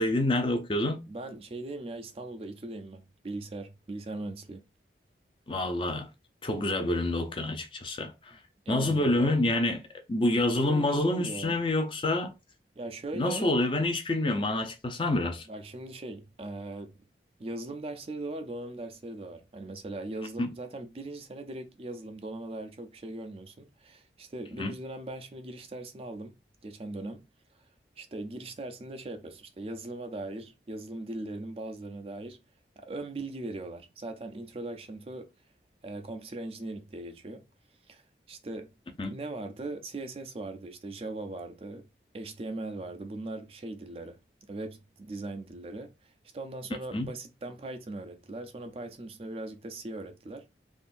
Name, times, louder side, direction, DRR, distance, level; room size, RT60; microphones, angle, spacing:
voice 1, 0.0-1.1 5.5-6.1 6.4-8.4 8.7-9.8 10.1-12.3 13.1-15.5 20.4-20.5 24.6-24.7 39.0-39.1 46.9-47.1, left 1 dB, 30° left, 0.5 m, -27 dB
voice 2, 1.1-4.6 8.7-9.4 10.5-11.6 12.8-13.5 15.5-17.0 17.4-26.3 26.6-27.2 28.0-32.4 32.8-35.3 35.8-37.4 37.9-38.7 39.1-41.9 42.1-44.2 44.5-50.5, right 2 dB, 35° right, 0.4 m, -39 dB
3.6 x 2.5 x 2.5 m
head